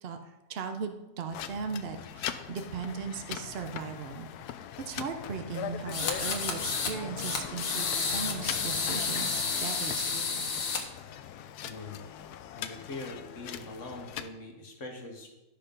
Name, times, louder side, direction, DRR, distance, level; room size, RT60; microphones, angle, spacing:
voice 1, 0.0-4.3 4.9-10.5, right 6 dB, 65° right, 7 dB, 0.6 m, -38 dB
sound 1, 1.3-14.3, left 10 dB, 70° left, 1.0 m, -41 dB
sound 2, 5.9-6.9 7.2-10.8, left 5 dB, 90° left, 1.9 m, -31 dB
voice 2, 11.6-12.0 12.5-15.3, left 2 dB, 45° left, 2 dB, 1.6 m, -42 dB
12.0 x 6.0 x 5.2 m, 1.0 s
omnidirectional pair, 2.0 m